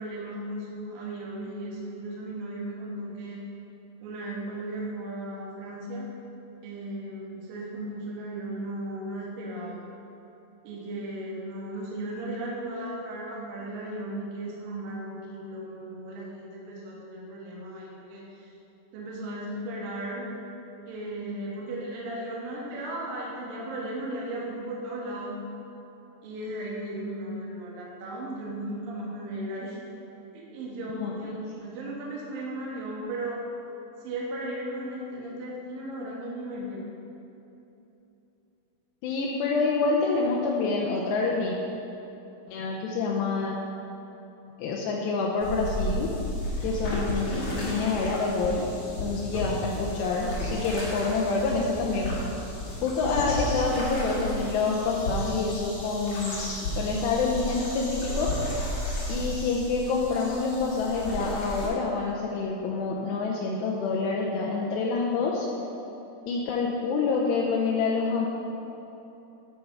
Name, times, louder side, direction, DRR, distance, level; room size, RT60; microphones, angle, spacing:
voice 1, 0.0-3.4 4.0-6.1 6.6-9.8 10.6-18.5 18.9-20.3 20.9-25.4 26.2-29.8 30.3-33.4 34.0-36.8 53.0-53.2, right 1 dB, 65° right, -4 dB, 2.4 m, -36 dB
voice 2, 39.0-41.6 42.5-43.6 44.6-46.1 46.6-48.7 49.0-52.2 52.8-58.3 59.1-65.5 66.3-68.3, left 4 dB, 85° left, -2 dB, 2.5 m, -27 dB
sound 1, 45.4-61.7, equal, 55° left, 1.7 m, -33 dB
12.5 x 5.5 x 4.6 m, 3.0 s
omnidirectional pair, 5.6 m